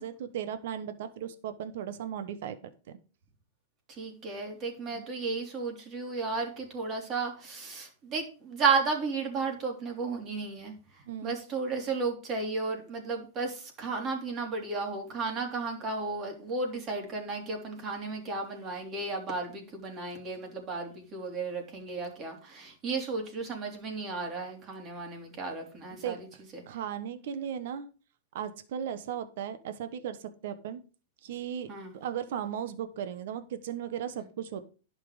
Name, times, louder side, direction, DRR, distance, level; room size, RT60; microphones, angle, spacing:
voice 1, 0.0-2.6 2.9-3.0 4.9-5.0 11.1-11.4 26.0-26.2 26.7-27.9 28.3-30.8 31.2-34.7, right 9 dB, 65° right, 10 dB, 1.1 m, -36 dB
voice 2, 3.9-10.7 11.2-26.3 26.5-26.6 31.7-31.9, right 4 dB, 30° right, 2 dB, 3.3 m, -33 dB
11.0 x 5.9 x 5.0 m, 0.36 s
hypercardioid pair, 140°, 0 cm